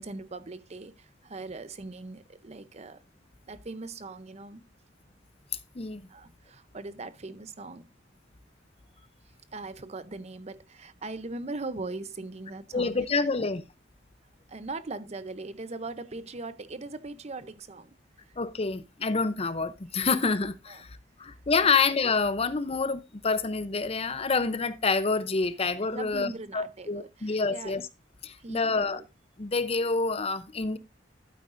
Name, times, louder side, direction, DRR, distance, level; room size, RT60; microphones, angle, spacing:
voice 1, 0.0-3.0 3.5-4.6 6.1-7.9 9.5-13.0 14.5-18.0 20.7-20.8 21.6-21.8 25.9-27.8 28.4-29.0, right 3 dB, 35° right, 0.7 m, -40 dB
voice 2, 12.7-13.6 18.4-27.8 28.2-29.0 29.4-30.8, left 4 dB, 30° left, 0.6 m, -27 dB
12.0 x 8.9 x 2.6 m
head